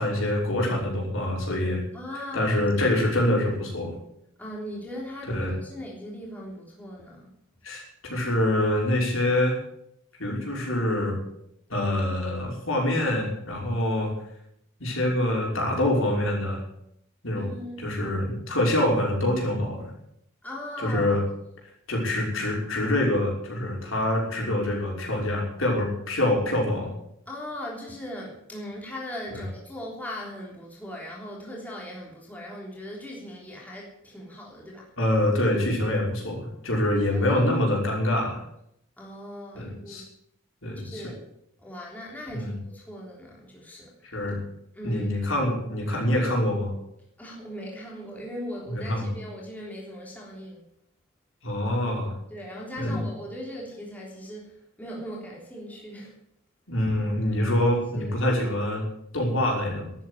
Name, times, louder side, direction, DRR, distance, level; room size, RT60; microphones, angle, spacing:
voice 1, 0.0-1.8 2.3-3.9 5.3-5.5 7.6-9.6 10.2-11.2 11.7-14.1 14.8-16.6 17.2-17.5 17.8-19.9 20.8-21.2 21.9-26.9 29.3-29.4 35.0-38.4 39.5-40.0 40.6-41.0 42.3-42.6 44.0-44.4 44.8-46.7 48.7-49.1 51.4-52.1 52.8-53.0 56.7-58.8 59.1-59.9, left 1 dB, 65° left, -1 dB, 5.8 m, -25 dB
voice 2, 1.9-2.6 4.4-7.3 17.3-17.9 20.4-21.1 27.3-34.9 37.3-37.4 39.0-40.1 40.8-41.2 41.6-43.9 44.7-45.1 47.2-50.6 52.3-56.1 58.0-58.1, left 1 dB, 10° left, -3 dB, 3.5 m, -39 dB
12.5 x 9.3 x 9.9 m, 0.77 s
head